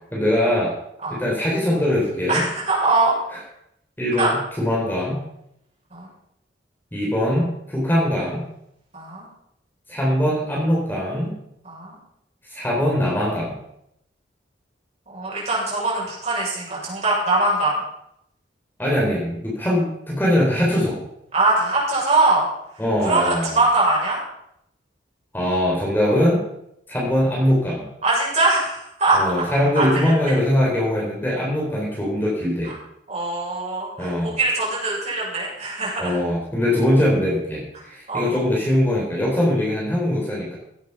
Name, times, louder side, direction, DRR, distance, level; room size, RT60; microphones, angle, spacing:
voice 1, 0.1-0.8 1.1-2.4 3.3-3.4 4.0-5.2 6.9-8.4 9.9-11.3 12.5-13.6 18.8-21.0 22.8-23.6 25.3-26.4 26.9-27.9 29.1-32.7 34.0-34.3 36.0-40.5, left 1 dB, 10° left, -4 dB, 3.9 m, -21 dB
voice 2, 2.3-3.1 4.2-4.3 5.9-6.1 8.9-9.3 11.6-12.0 15.1-17.8 21.3-22.5 23.0-24.2 28.0-29.2 29.8-30.1 33.1-36.1 38.1-38.3, right 2 dB, 35° right, -6 dB, 6.9 m, -22 dB
17.0 x 9.2 x 5.7 m, 0.77 s
head